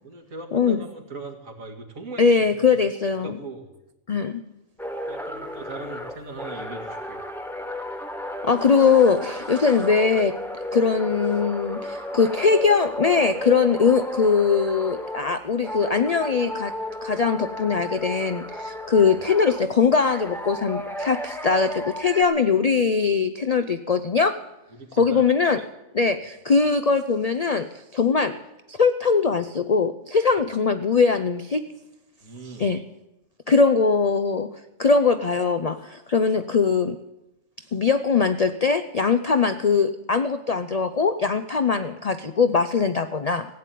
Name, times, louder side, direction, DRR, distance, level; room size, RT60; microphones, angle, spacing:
voice 1, 0.0-2.7 3.0-3.7 5.1-7.2 24.7-25.2 32.2-32.7, right 3 dB, 75° right, 2 dB, 2.3 m, -39 dB
voice 2, 2.2-3.4 4.1-4.4 8.4-10.4 10.7-16.7 17.0-24.4 24.9-25.6 25.9-28.4 28.7-31.6 32.6-32.8 33.5-34.5 34.8-37.0 37.7-43.5, left 5 dB, 60° left, 10 dB, 0.4 m, -21 dB
sound 1, 4.8-15.3 15.6-19.6 20.1-22.2, left 1 dB, ahead, 1.3 m, -33 dB
15.5 x 8.5 x 9.1 m, 0.95 s
omnidirectional pair, 1.4 m